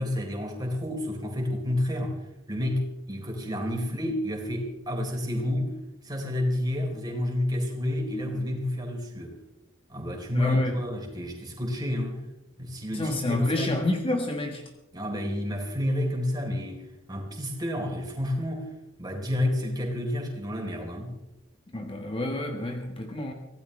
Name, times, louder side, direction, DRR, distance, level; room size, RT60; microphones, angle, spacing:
voice 1, 0.0-2.2 2.5-5.7 6.0-9.4 9.9-12.2 12.6-13.8 14.9-18.7 19.0-21.2, left 1 dB, 20° right, 0 dB, 4.1 m, -29 dB
voice 2, 10.3-10.8 12.9-14.6 21.7-23.3, left 1 dB, 30° left, 3 dB, 1.5 m, -29 dB
24.5 x 17.0 x 3.4 m, 0.90 s
head